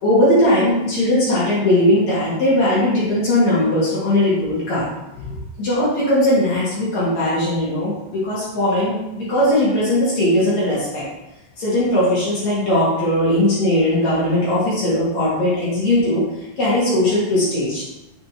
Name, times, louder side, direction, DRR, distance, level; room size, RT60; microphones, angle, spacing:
voice 1, 0.0-4.9 5.6-11.0 11.6-16.2 16.6-17.8, left 1 dB, 60° left, -9 dB, 1.9 m, -18 dB
7.5 x 4.3 x 2.9 m, 0.93 s
omnidirectional pair, 5.7 m